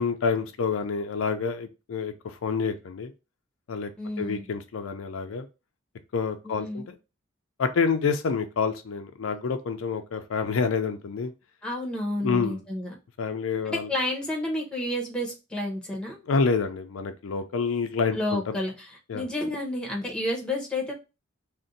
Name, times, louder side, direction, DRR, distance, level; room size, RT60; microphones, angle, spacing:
voice 1, 0.0-3.1 3.7-3.9 4.2-5.5 6.1-7.0 7.6-11.3 12.2-12.6 13.2-13.9 16.3-18.6 19.1-19.3, left 5 dB, 90° left, 7 dB, 0.4 m, -28 dB
voice 2, 4.0-4.5 6.4-6.8 11.6-12.9 13.6-16.2 18.1-20.9, left 1 dB, 5° left, 0 dB, 0.7 m, -30 dB
2.5 x 2.1 x 3.9 m, 0.28 s
head